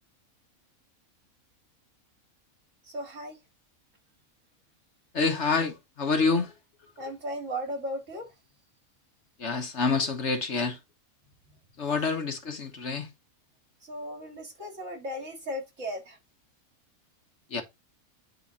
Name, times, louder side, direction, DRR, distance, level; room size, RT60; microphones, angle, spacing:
voice 1, 2.9-3.4 7.0-8.3 13.8-16.2, equal, 60° right, 2.9 m, -36 dB
voice 2, 5.1-6.5 9.4-10.8 11.8-13.1 17.5-17.6, left 4 dB, 55° left, 1.4 m, -27 dB
9.5 x 3.6 x 4.2 m
omnidirectional pair, 1.5 m